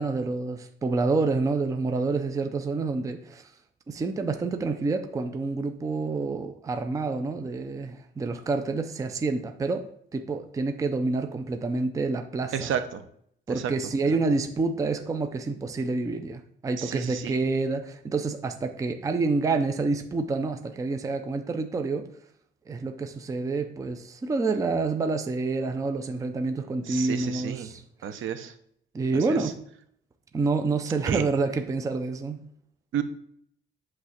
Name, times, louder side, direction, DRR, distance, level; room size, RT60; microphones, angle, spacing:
voice 1, 0.0-3.4 3.9-12.7 13.5-22.1 22.7-28.1 28.9-29.6 30.3-32.4, right 3 dB, 15° right, 6 dB, 0.4 m, -28 dB
voice 2, 12.5-13.0 13.5-13.7 14.0-14.2 16.8-17.4 26.8-27.7 28.0-28.5 29.1-29.5 31.1-31.2 32.9-33.0, right 9 dB, 70° right, 9 dB, 0.9 m, -32 dB
8.3 x 3.2 x 6.3 m, 0.67 s
cardioid pair, 175°, 21 cm